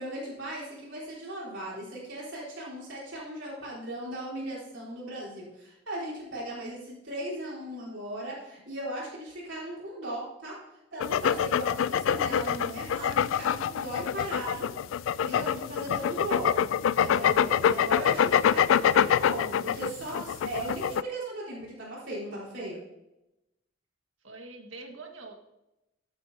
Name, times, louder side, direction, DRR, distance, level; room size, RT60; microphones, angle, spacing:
voice 1, 0.0-10.6 10.9-14.7 15.2-16.6 17.0-22.8, right 1 dB, 70° right, -5 dB, 4.3 m, -37 dB
sound 1, 11.0-21.0, left 8 dB, 85° left, 0.3 m, -25 dB
voice 2, 24.2-25.3, right 3 dB, 85° right, 2 dB, 1.8 m, -44 dB
14.5 x 8.5 x 2.8 m, 0.93 s
head